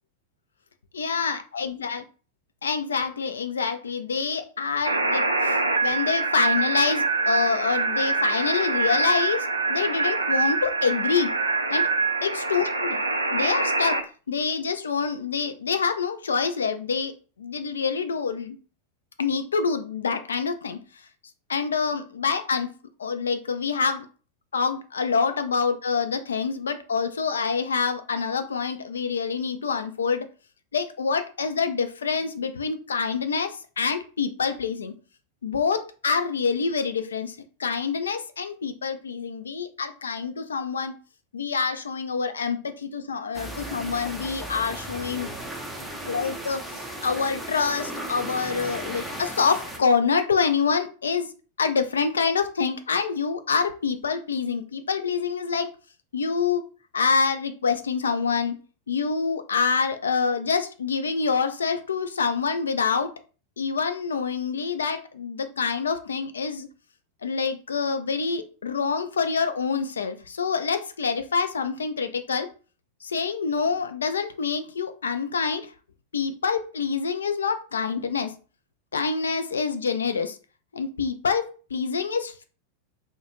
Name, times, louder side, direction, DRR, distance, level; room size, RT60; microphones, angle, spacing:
voice 1, 0.9-2.0 2.6-11.3 11.7-11.8 12.2-13.0 13.3-14.0 14.3-17.1 17.4-18.6 19.2-20.8 21.5-22.7 23.0-24.1 24.5-30.3 30.7-34.9 35.4-41.0 41.3-45.3 46.1-51.3 51.6-55.7 56.1-56.6 56.9-58.6 58.9-63.1 63.6-66.7 67.2-72.5 73.0-75.7 76.1-78.3 78.9-80.4 80.7-82.4, left 5 dB, 70° left, 9 dB, 0.3 m, -26 dB
sound 1, 4.8-14.0, right 3 dB, 80° right, 0.3 m, -25 dB
sound 2, 43.3-49.8, right 1 dB, ahead, 0.5 m, -36 dB
2.3 x 2.1 x 2.9 m, 0.36 s
figure-of-eight pair, 90°, 0 cm